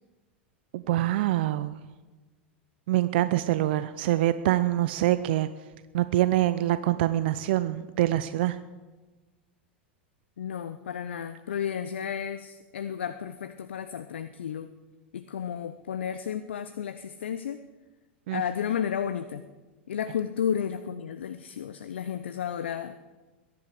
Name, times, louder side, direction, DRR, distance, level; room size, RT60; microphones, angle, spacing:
voice 1, 0.7-1.8 2.9-5.5 5.9-8.6 18.3-18.4, right 14 dB, 65° right, 13 dB, 0.6 m, -25 dB
voice 2, 10.4-14.7 15.1-17.6 18.3-19.4 19.9-23.0, left 8 dB, 75° left, 11 dB, 0.6 m, -32 dB
21.5 x 10.5 x 5.0 m, 1.3 s
hypercardioid pair, 90°, 6 cm